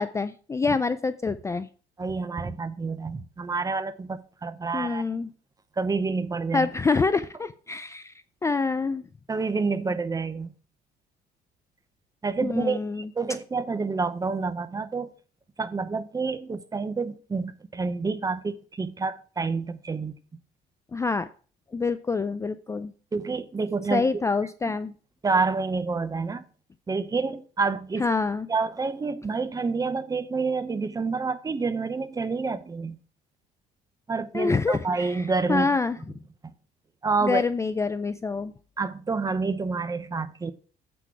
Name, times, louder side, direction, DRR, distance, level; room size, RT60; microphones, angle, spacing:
voice 1, 0.0-1.7 4.7-5.3 6.5-8.1 8.4-9.0 12.4-13.1 20.9-21.3 21.7-22.9 23.9-24.9 28.0-28.5 34.3-36.0 37.2-38.5, left 4 dB, 15° left, 0.4 m, -26 dB
voice 2, 2.0-5.0 5.8-6.7 9.3-10.5 12.2-15.1 15.6-20.1 23.1-24.1 25.2-26.4 26.9-28.1 28.5-33.0 34.1-35.7 36.4-36.5 37.0-37.4 38.8-40.5, right 4 dB, 20° right, 0.8 m, -28 dB
8.0 x 6.1 x 4.6 m
cardioid pair, 110°, 17 cm